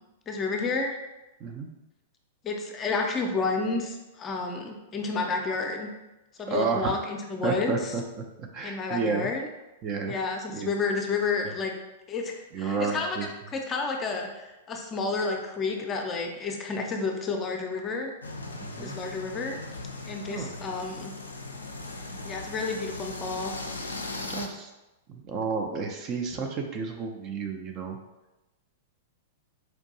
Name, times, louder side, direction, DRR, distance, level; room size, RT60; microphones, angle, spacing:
voice 1, 0.3-1.0 2.4-5.9 6.4-7.9 8.6-9.5 10.0-11.7 12.1-13.2 13.5-18.1 18.8-19.6 20.0-21.1 22.2-23.5, left 4 dB, 25° left, 2 dB, 0.5 m, -30 dB
voice 2, 6.5-7.1 7.4-8.0 8.4-9.3 9.8-10.2 10.5-10.7 12.5-13.3 18.6-19.0 20.3-20.5 24.3-24.7 25.1-28.0, right 4 dB, 35° right, 3 dB, 0.4 m, -31 dB
sound 1, 18.2-24.5, left 2 dB, 80° left, 0.4 m, -38 dB
4.4 x 2.6 x 2.7 m, 1.0 s
figure-of-eight pair, 100°, 0 cm